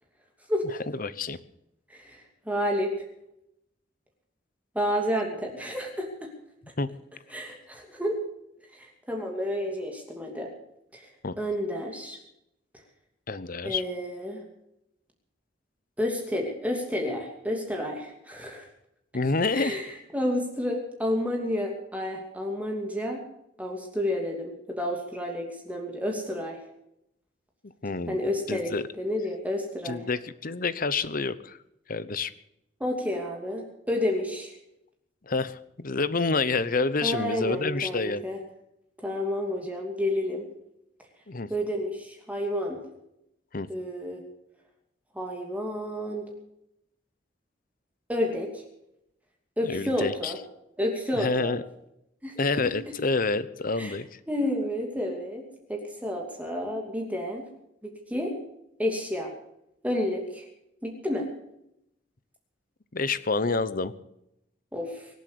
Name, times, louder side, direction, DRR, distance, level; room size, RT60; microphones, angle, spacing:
voice 1, 1.0-1.4 6.8-6.9 11.2-11.3 13.3-13.8 19.1-19.8 27.6-28.2 28.5-28.8 29.8-31.6 31.9-32.3 35.3-38.2 41.3-41.5 43.5-43.7 49.6-50.3 51.1-51.6 52.4-54.1 62.9-63.9, left 3 dB, 50° left, 15 dB, 0.9 m, -28 dB
voice 2, 1.9-2.9 4.7-6.1 7.3-8.2 8.7-10.5 10.9-11.1 11.4-12.2 13.6-14.4 16.0-18.7 19.5-19.9 20.1-23.2 23.6-26.6 28.1-30.0 32.8-33.6 33.9-34.5 37.0-38.4 39.0-40.4 41.5-42.8 43.7-44.2 45.1-46.3 48.1-48.6 49.6-50.4 50.8-51.6 52.2-52.4 52.6-52.9 53.8-53.9 54.3-57.5 57.8-58.3 58.8-59.3 59.8-60.5 60.8-61.3 64.7-65.1, left 1 dB, 10° right, 1 dB, 2.7 m, -30 dB
23.5 x 8.3 x 6.9 m, 0.81 s
head